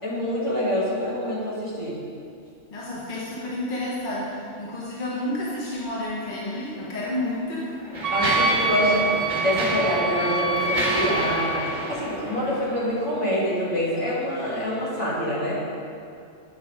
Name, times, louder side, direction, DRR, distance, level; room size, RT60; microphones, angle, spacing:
voice 1, 0.0-2.0 8.1-15.6, equal, 65° left, -8 dB, 2.5 m, -26 dB
voice 2, 2.7-7.7, left 1 dB, 40° left, -6 dB, 1.3 m, -30 dB
Mechanisms, 6.6-6.7 7.4-13.2, right 1 dB, 30° right, 1.7 m, -30 dB
Wind instrument woodwind instrument, 8.0-11.7, right 3 dB, 70° right, 0.9 m, -26 dB
9.5 x 5.1 x 4.7 m, 2.5 s
omnidirectional pair, 1.4 m